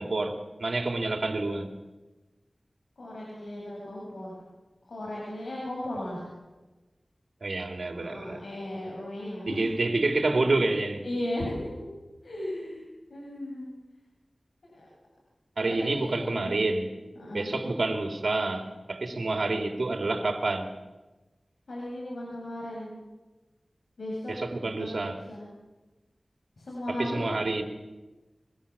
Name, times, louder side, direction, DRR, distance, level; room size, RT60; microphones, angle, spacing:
voice 1, 0.0-1.7 7.4-8.4 9.5-11.0 15.6-16.9 17.3-20.7 24.3-25.2 26.9-27.6, right 2 dB, 75° right, 4 dB, 3.5 m, -28 dB
voice 2, 3.0-4.4 4.9-6.3 8.0-9.6 11.0-11.9 12.2-12.8 13.1-13.7 14.6-14.9 15.7-16.6 17.1-17.5 21.7-23.0 24.0-24.4 24.8-25.5 26.6-27.3, left 1 dB, 90° left, -3 dB, 7.2 m, -36 dB
24.5 x 23.0 x 7.3 m, 1.1 s
wide cardioid pair, 45°, 0 cm